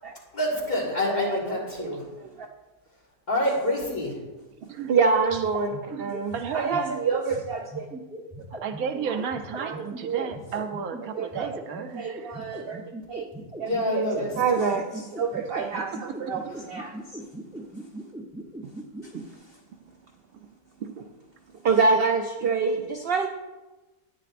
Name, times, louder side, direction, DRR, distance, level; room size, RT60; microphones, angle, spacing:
voice 1, 0.3-2.0 3.3-4.2 13.6-14.3, left 1 dB, 40° left, -5 dB, 3.1 m, -26 dB
voice 2, 1.1-1.9 2.2-2.5 4.6-7.9 9.1-9.2 9.6-10.3 11.2-11.5 11.9-12.8 13.1-13.3 13.6-17.2 20.8-21.1 21.6-23.3, right 4 dB, 55° right, 3 dB, 0.7 m, -27 dB
sound 1, 5.3-19.2, right 1 dB, 5° right, 0.6 m, -39 dB
voice 3, 5.9-7.0 8.5-12.4, right 7 dB, 80° right, 7 dB, 1.1 m, -33 dB
11.0 x 9.6 x 2.5 m, 1.1 s
omnidirectional pair, 1.5 m